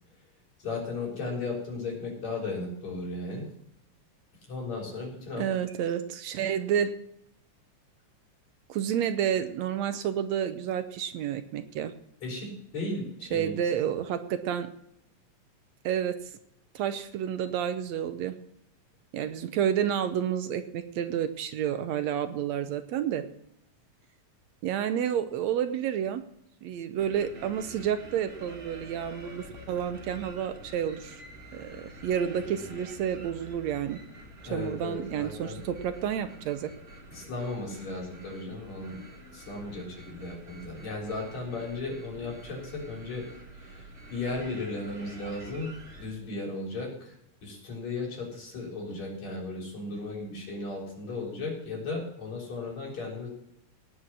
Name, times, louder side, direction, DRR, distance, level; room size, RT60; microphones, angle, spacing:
voice 1, 0.6-3.5 4.5-5.4 12.2-13.6 34.5-35.6 37.1-39.0 39.3-43.3 43.6-43.9 44.1-45.7 46.0-47.1 47.4-53.3, left 3 dB, 65° left, -1 dB, 5.2 m, -35 dB
voice 2, 5.4-6.9 8.7-11.9 13.3-14.7 15.8-16.2 16.8-18.4 19.1-23.3 24.6-26.2 26.6-31.2 31.5-34.0 34.5-36.7, right 9 dB, 75° right, 10 dB, 2.0 m, -30 dB
sound 1, 27.0-46.1, equal, 30° right, 2.6 m, -47 dB
18.0 x 6.4 x 6.2 m, 0.76 s
omnidirectional pair, 3.3 m